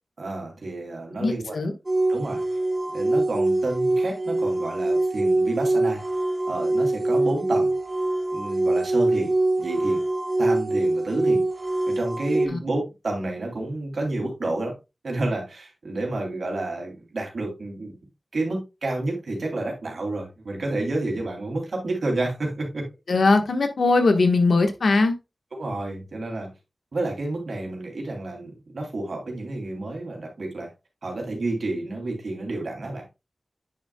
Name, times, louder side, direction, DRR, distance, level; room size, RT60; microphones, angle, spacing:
voice 1, 0.2-1.6 2.1-2.4 2.9-6.0 6.5-7.7 8.3-9.3 9.6-10.0 10.4-11.4 11.9-14.7 15.0-18.0 18.3-22.9 25.5-26.5 26.9-30.7 31.0-33.0, right 2 dB, 80° right, 2.8 m, -30 dB
voice 2, 1.2-1.7 12.5-12.6 23.1-25.1, left 3 dB, 85° left, 1.3 m, -20 dB
sound 1, 1.9-12.5, right 2 dB, 30° right, 0.8 m, -24 dB
9.4 x 6.5 x 2.3 m
wide cardioid pair, 100°, 0 cm